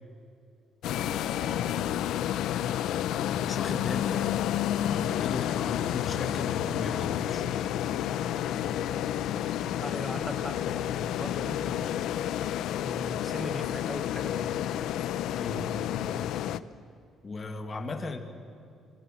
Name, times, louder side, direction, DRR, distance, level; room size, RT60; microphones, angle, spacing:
sound 1, 0.8-16.6, left 11 dB, 75° left, 0.8 m, -30 dB
voice 1, 0.9-2.0 3.3-4.3 4.9-7.5 15.4-15.7 17.2-18.2, left 3 dB, 30° left, 6 dB, 2.2 m, -38 dB
sound 2, 6.9-13.1, right 1 dB, 45° right, 7.2 m, -51 dB
voice 2, 9.8-12.1 12.8-14.6, right 1 dB, 5° right, 11 dB, 1.5 m, -40 dB
26.0 x 22.0 x 7.5 m, 2.6 s
cardioid pair, 130°, 0 cm